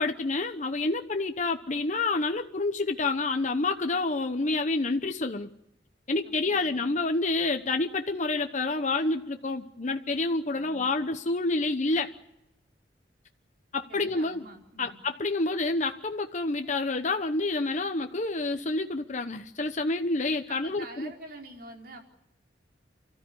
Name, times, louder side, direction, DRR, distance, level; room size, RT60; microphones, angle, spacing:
voice 1, 0.0-5.5 6.1-12.1 13.7-14.4 14.8-21.1, left 3 dB, 45° left, 6 dB, 1.0 m, -28 dB
voice 2, 6.2-6.9 10.5-11.1 13.9-15.0 20.5-22.0, right 2 dB, 60° right, 1 dB, 4.7 m, -47 dB
28.5 x 14.0 x 9.8 m, 0.84 s
head